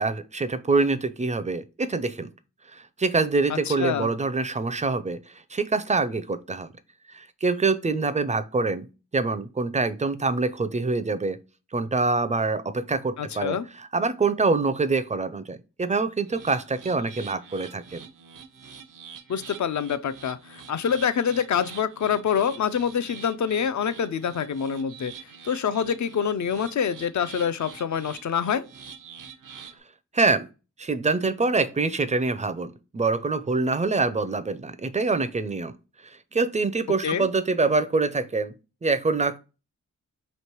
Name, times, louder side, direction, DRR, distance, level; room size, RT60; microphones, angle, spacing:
voice 1, 0.0-2.3 2.7-5.2 5.5-6.7 7.1-8.9 9.1-11.4 11.7-18.1 30.1-30.5 30.8-35.7 36.3-38.5 38.8-39.4, right 3 dB, 25° right, 0.4 m, -25 dB
voice 2, 3.5-4.1 13.2-13.7 19.3-25.1 25.4-28.7 37.0-37.3, left 7 dB, 65° left, 0.5 m, -26 dB
sound 1, 16.2-29.8, right 6 dB, 85° right, 0.6 m, -46 dB
3.2 x 2.9 x 4.4 m
wide cardioid pair, 75°, 31 cm